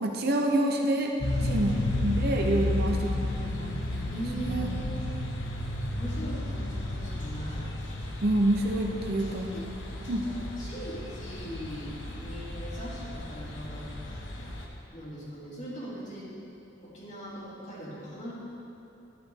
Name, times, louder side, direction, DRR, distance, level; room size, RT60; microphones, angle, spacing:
voice 1, 0.0-1.1 1.4-4.0 4.5-4.7 8.2-9.5 10.1-10.2, right 1 dB, 55° right, 1 dB, 0.9 m, -27 dB
sound 1, 1.2-14.7, left 1 dB, 70° left, 1.2 m, -33 dB
voice 2, 1.3-2.1 2.8-3.5 4.0-4.8 5.9-7.7 9.5-13.9 14.9-16.4 16.8-18.3, right 1 dB, 40° left, -7 dB, 2.6 m, -40 dB
11.0 x 9.9 x 3.8 m, 2.8 s
head